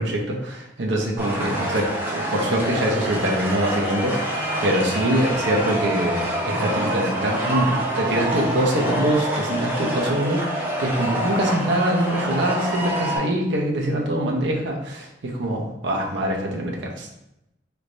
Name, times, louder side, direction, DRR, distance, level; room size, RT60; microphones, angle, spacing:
voice 1, 0.0-17.1, right 1 dB, 70° right, -1 dB, 0.6 m, -24 dB
sound 1, 1.2-13.2, right 1 dB, 10° right, 0.6 m, -26 dB
3.3 x 3.1 x 2.5 m, 0.85 s
head